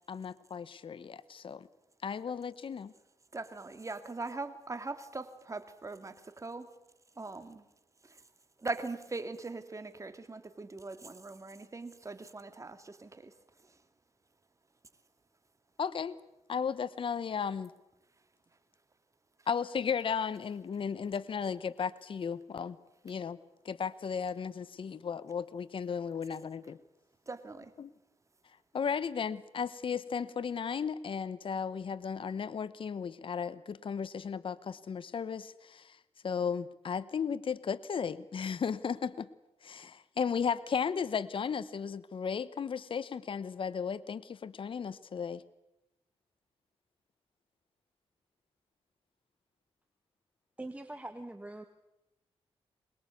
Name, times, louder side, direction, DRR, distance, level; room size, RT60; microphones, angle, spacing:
voice 1, 0.1-1.7 2.0-2.9 15.8-16.1 16.5-17.7 19.5-22.8 23.0-23.4 23.6-26.8 27.8-27.9 28.7-36.0 36.2-39.3 39.6-45.4, left 6 dB, 55° left, 17 dB, 1.0 m, -35 dB
voice 2, 3.3-6.8 7.2-7.7 8.0-8.3 8.6-13.8 27.3-27.7, right 3 dB, 30° right, 10 dB, 2.3 m, -41 dB
voice 3, 50.6-51.6, right 1 dB, 10° right, 7 dB, 1.6 m, -43 dB
23.5 x 21.0 x 8.4 m, 0.91 s
cardioid pair, 70°, 11 cm